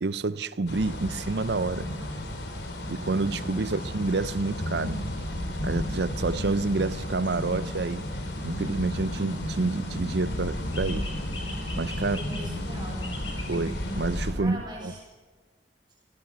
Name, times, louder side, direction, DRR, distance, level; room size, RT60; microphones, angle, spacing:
voice 1, 0.0-1.9 2.9-5.0 5.6-8.1 8.4-11.1 11.8-12.2 13.5-14.9, right 3 dB, 75° right, 0.7 m, -28 dB
sound 1, 0.7-14.3, left 1 dB, 85° left, 3.6 m, -33 dB
voice 2, 3.4-3.8 12.0-13.2 14.4-15.0, equal, 20° right, 6.4 m, -41 dB
sound 2, 7.2-7.4 10.7-12.5 13.0-13.7, left 2 dB, 30° left, 3.0 m, -41 dB
28.0 x 17.0 x 6.3 m
head